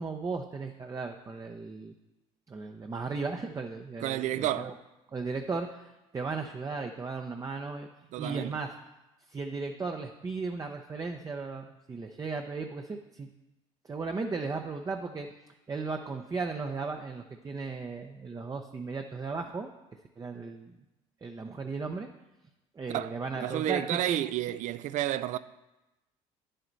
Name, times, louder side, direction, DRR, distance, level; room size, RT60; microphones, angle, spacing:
voice 1, 0.0-1.9 2.5-4.7 5.1-7.9 8.2-8.7 9.3-13.3 13.9-15.3 15.7-19.7 20.2-20.8 21.2-22.1 22.8-23.8 24.1-24.2 24.5-24.6, right 4 dB, 25° right, 0.7 m, -36 dB
voice 2, 4.0-4.7 8.1-8.6 22.9-25.4, right 13 dB, 65° right, 0.4 m, -31 dB
9.8 x 7.7 x 4.0 m
supercardioid pair, 90°, 14 cm